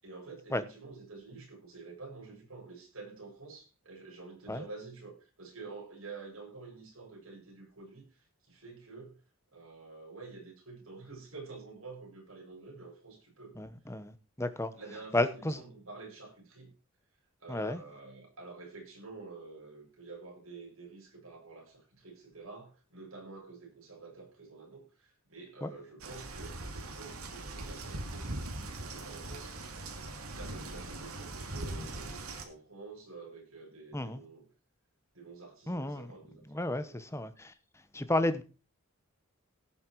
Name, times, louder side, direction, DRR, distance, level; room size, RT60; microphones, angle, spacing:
voice 1, 0.0-9.2 9.5-13.5 14.7-16.7 17.4-29.6 30.2-34.4 35.1-36.4 36.7-37.0, right 3 dB, 70° right, 7.6 m, -49 dB
voice 2, 13.6-14.7 15.1-15.6 17.5-17.8 25.6-25.7 33.9-34.2 35.7-36.1 36.5-37.5 37.9-38.4, left 1 dB, 15° left, 1.0 m, -32 dB
sound 1, 26.0-32.5, right 2 dB, 90° right, 2.4 m, -41 dB
17.0 x 7.3 x 4.7 m
head